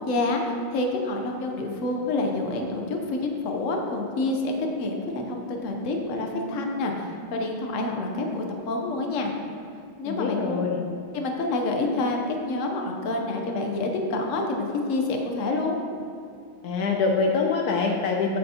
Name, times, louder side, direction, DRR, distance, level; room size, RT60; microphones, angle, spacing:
voice 1, 0.0-9.3 10.0-10.6 11.1-15.8, left 2 dB, 60° left, 2 dB, 0.8 m, -28 dB
voice 2, 10.0-10.8 16.6-18.4, left 4 dB, 90° left, 1 dB, 0.8 m, -24 dB
9.1 x 7.7 x 2.9 m, 2.3 s
omnidirectional pair, 2.4 m